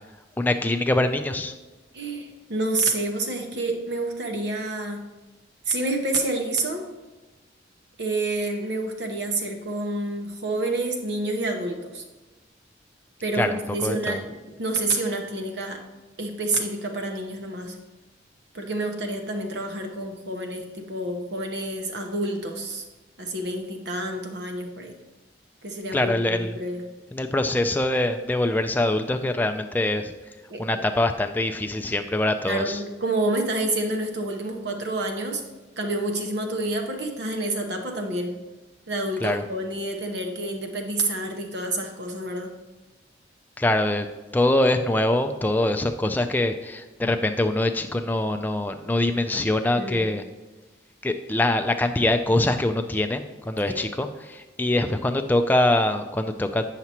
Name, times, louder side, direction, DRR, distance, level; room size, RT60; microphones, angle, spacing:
voice 1, 0.4-1.5 13.3-14.2 25.9-26.6 27.1-30.1 30.6-32.8 39.2-39.5 43.6-44.1 44.3-50.2 51.0-56.6, left 1 dB, 10° left, 6 dB, 0.3 m, -24 dB
voice 2, 1.9-5.0 5.7-6.9 8.0-12.0 13.2-15.8 16.2-17.8 18.5-22.8 23.2-24.9 25.6-26.8 30.5-30.8 32.4-35.4 35.8-38.3 38.9-42.5 49.8-50.0 53.7-53.8, right 2 dB, 70° right, 3 dB, 1.0 m, -28 dB
9.4 x 5.8 x 2.9 m, 1.2 s
head